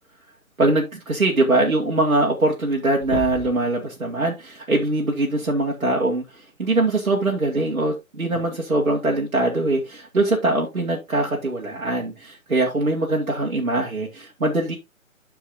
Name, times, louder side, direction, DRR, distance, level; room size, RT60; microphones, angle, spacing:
voice 1, 0.6-6.2 6.6-14.8, right 2 dB, 80° right, 2.1 m, -22 dB
sound 1, 2.6-2.7 3.0-3.7 5.4-5.5 7.3-7.4 8.3-8.4, left 4 dB, 20° left, 0.8 m, -32 dB
13.0 x 4.6 x 2.7 m
figure-of-eight pair, 145°, 41 cm